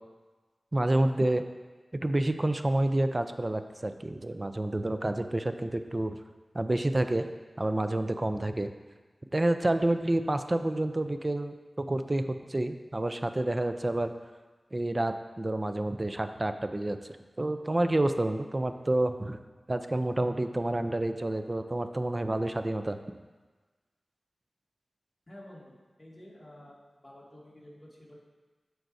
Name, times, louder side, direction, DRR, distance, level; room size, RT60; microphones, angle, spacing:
voice 1, 0.7-1.4 1.9-6.2 6.5-7.3 7.6-8.7 9.3-14.1 14.7-17.0 17.4-19.4 19.7-23.0, right 1 dB, 30° right, 9 dB, 0.4 m, -29 dB
voice 2, 25.3-28.2, left 1 dB, 25° left, -6 dB, 2.2 m, -51 dB
13.0 x 4.6 x 2.7 m, 1.3 s
wide cardioid pair, 65°, 0 cm